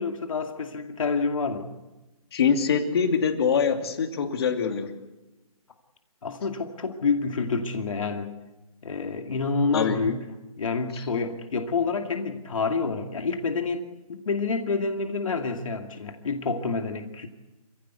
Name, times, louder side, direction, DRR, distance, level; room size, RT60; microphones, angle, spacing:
voice 1, 0.0-1.7 6.2-8.3 8.8-10.3 10.6-13.8 14.1-17.3, left 4 dB, 60° left, 4 dB, 2.4 m, -28 dB
voice 2, 2.3-4.9 9.7-10.0 10.9-11.0, left 6 dB, 40° left, 5 dB, 2.7 m, -24 dB
28.0 x 16.5 x 8.2 m, 1.1 s
hypercardioid pair, 155°, 19 cm